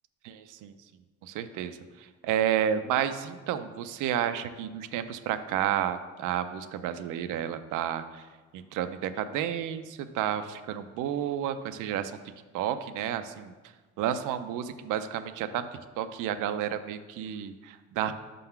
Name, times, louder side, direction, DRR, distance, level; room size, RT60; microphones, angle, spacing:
voice 1, 0.2-0.7 1.2-8.2 8.5-12.1 12.5-13.5 14.0-15.7 16.0-18.1, right 10 dB, 85° right, 10 dB, 0.5 m, -31 dB
5.3 x 3.8 x 5.7 m, 1.3 s
cardioid pair, 90°, 30 cm